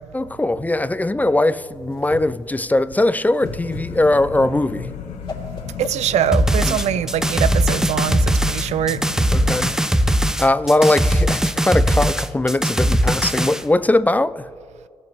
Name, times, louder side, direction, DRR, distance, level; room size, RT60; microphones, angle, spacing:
voice 1, 0.1-4.9 6.7-6.8 9.3-9.8 10.4-14.5, left 2 dB, 15° left, 0.4 m, -20 dB
Whoosh swoosh swish, 1.5-7.0, left 2 dB, 45° left, 2.6 m, -38 dB
sound 1, 3.4-9.8, left 7 dB, 75° left, 0.9 m, -33 dB
voice 2, 5.8-9.0, right 10 dB, 65° right, 0.5 m, -22 dB
sound 2, 6.3-13.6, equal, 5° right, 0.8 m, -19 dB
18.0 x 7.4 x 3.1 m
hypercardioid pair, 45°, 12 cm